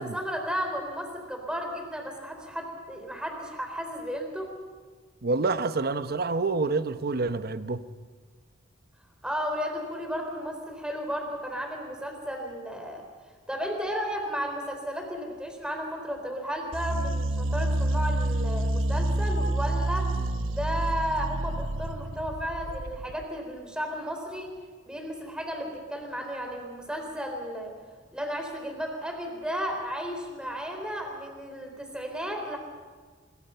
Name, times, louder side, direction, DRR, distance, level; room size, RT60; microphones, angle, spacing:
voice 1, 0.0-4.5 9.2-13.0 13.5-20.1 20.4-24.5 24.9-27.7 28.1-32.6, equal, 5° right, 4.0 m, -33 dB
voice 2, 5.2-7.8, right 3 dB, 55° right, 0.9 m, -27 dB
sound 1, 16.7-23.2, right 1 dB, 85° right, 1.1 m, -28 dB
25.0 x 22.0 x 5.7 m
head